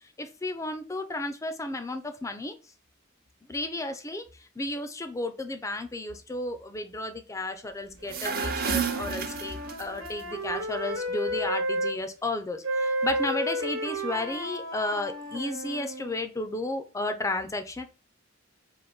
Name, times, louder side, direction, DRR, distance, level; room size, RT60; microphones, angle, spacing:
voice 1, 0.2-2.5 3.5-4.2 4.6-17.9, left 2 dB, 15° left, 8 dB, 0.4 m, -33 dB
sound 1, 7.9-10.1, right 6 dB, 50° right, 0.6 m, -31 dB
Wind instrument woodwind instrument, 8.0-12.0 12.6-16.2, right 1 dB, 65° right, 1.1 m, -32 dB
3.9 x 2.5 x 3.5 m, 0.33 s
head